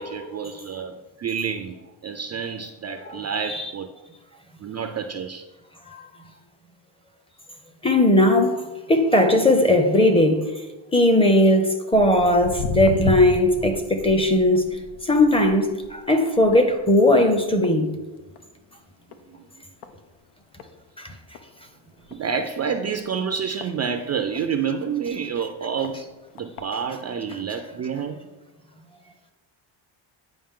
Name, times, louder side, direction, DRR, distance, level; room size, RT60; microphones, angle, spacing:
voice 1, 0.0-1.8 2.0-3.9 4.6-5.4 19.3-19.4 22.1-28.2, right 6 dB, 35° right, 0.4 m, -29 dB
voice 2, 7.8-10.5 10.9-14.6 15.0-17.9 21.0-21.1, left 1 dB, 10° left, 0.6 m, -18 dB
Walk footsteps, 11.9-18.6 18.9-19.3 19.8-19.9 20.6-20.7 21.1-21.2 21.3-21.4 22.0-22.2 22.9-24.4 25.0-25.1 25.8-25.9 26.4-26.6 27.3-27.4, left 4 dB, 90° left, 0.8 m, -33 dB
8.8 x 5.1 x 3.7 m
cardioid pair, 135°, 48 cm